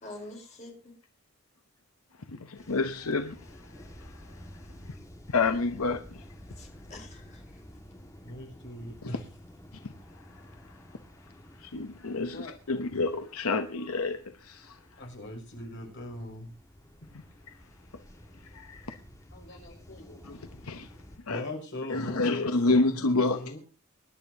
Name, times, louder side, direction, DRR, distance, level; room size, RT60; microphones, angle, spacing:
voice 1, 0.0-0.9 6.6-7.6 22.1-23.1, left 2 dB, 35° left, 4.1 m, -47 dB
voice 2, 2.3-5.0 5.3-6.2 9.0-9.2 9.7-9.9 10.3-10.7 11.6-15.1 18.4-19.0 20.2-20.9 21.3-21.4 21.9-23.6, left 3 dB, 85° left, 0.9 m, -30 dB
sound 1, 2.6-21.2, equal, 15° left, 1.7 m, -51 dB
voice 3, 8.2-9.2 12.3-12.5 15.0-16.5 19.3-20.2 21.3-23.6, left 1 dB, 55° left, 6.1 m, -40 dB
24.0 x 11.0 x 2.8 m
head